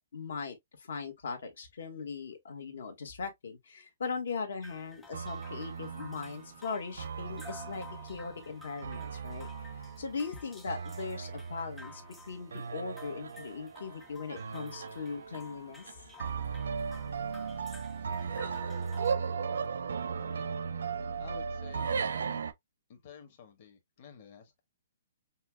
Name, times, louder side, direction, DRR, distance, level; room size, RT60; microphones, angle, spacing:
voice 1, 0.1-9.5 10.0-12.0 12.3-15.8, left 5 dB, 70° left, 1.5 m, -39 dB
sound 1, 4.6-19.1, left 3 dB, 5° left, 0.4 m, -53 dB
sound 2, 5.1-22.5, right 6 dB, 90° right, 0.6 m, -37 dB
voice 2, 20.2-20.5 21.2-22.4 22.9-24.6, left 6 dB, 35° left, 1.1 m, -52 dB
5.5 x 2.3 x 2.2 m
hypercardioid pair, 170°, 0 cm